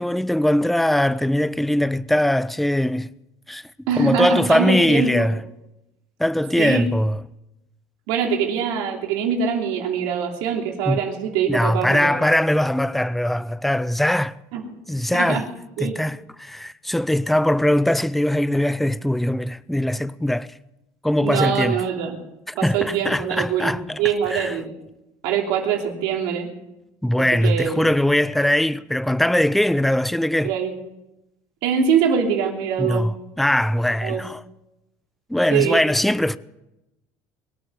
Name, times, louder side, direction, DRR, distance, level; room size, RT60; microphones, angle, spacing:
voice 1, 0.0-3.1 3.5-3.7 4.0-5.4 6.2-7.2 10.9-11.0 11.5-14.3 14.9-15.5 15.8-20.6 21.0-21.8 22.5-24.0 24.3-24.5 27.0-30.5 32.8-34.4 35.3-36.4, left 1 dB, ahead, 0.5 m, -21 dB
voice 2, 3.9-5.3 6.6-6.8 8.1-12.2 14.5-14.6 15.1-15.5 15.8-16.0 21.2-22.2 22.5-24.7 25.2-26.5 27.3-27.9 30.4-30.7 31.6-33.1 34.0-34.2 35.5-35.8, right 7 dB, 80° right, 3.1 m, -23 dB
22.5 x 8.9 x 6.9 m
cardioid pair, 125°, 8 cm